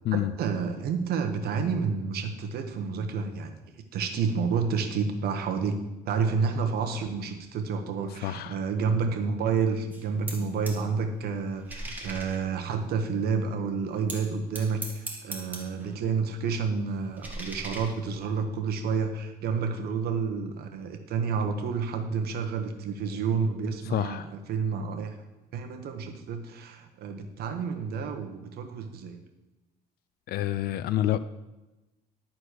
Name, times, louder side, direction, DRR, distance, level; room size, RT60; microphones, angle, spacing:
voice 1, 0.1-3.5 3.9-25.2 25.5-29.2, right 5 dB, 70° right, 5 dB, 1.3 m, -30 dB
voice 2, 8.2-8.6 23.9-24.3 30.3-31.2, left 12 dB, 65° left, 15 dB, 0.4 m, -28 dB
sound 1, 9.9-10.9 11.1-13.4 14.1-16.0 16.3-18.4, right 1 dB, 10° right, 1.9 m, -41 dB
11.5 x 4.3 x 6.6 m, 1.0 s
cardioid pair, 110°, 17 cm